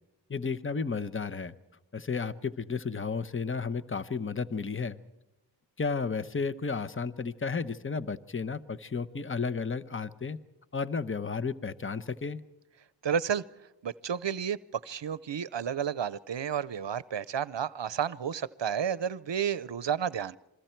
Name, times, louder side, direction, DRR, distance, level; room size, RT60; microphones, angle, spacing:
voice 1, 0.3-1.5 1.9-5.0 5.8-10.4 10.7-12.4, left 5 dB, 30° left, 12 dB, 0.9 m, -33 dB
voice 2, 13.0-13.4 13.8-14.6 14.8-20.4, right 8 dB, 70° right, 19 dB, 0.7 m, -31 dB
28.5 x 23.0 x 4.5 m, 0.95 s
wide cardioid pair, 55°, 45 cm